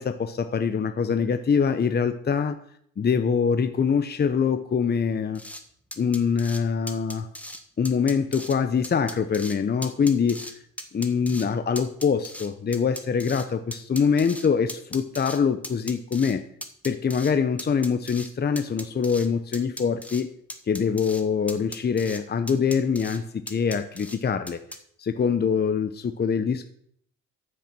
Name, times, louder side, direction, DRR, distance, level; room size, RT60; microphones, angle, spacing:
voice 1, 0.0-2.6 3.0-5.4 6.0-7.3 7.8-10.5 10.9-16.4 16.8-20.3 20.7-24.6 25.0-26.7, left 6 dB, 35° left, 9 dB, 0.8 m, -24 dB
sound 1, 5.3-5.6 5.9-6.6 6.9-7.6 7.8-8.6 8.8-9.6 9.8-10.5 10.8-11.5 11.7-13.5 13.7-15.4 15.6-16.3 16.6-17.3 17.6-18.3 18.6-19.3 19.5-20.2 20.5-21.2 21.5-22.2 22.5-23.2 23.5-24.2 24.5-24.8, left 1 dB, 5° left, 1.7 m, -38 dB
14.0 x 6.7 x 6.1 m, 0.67 s
cardioid pair, 90°, 30 cm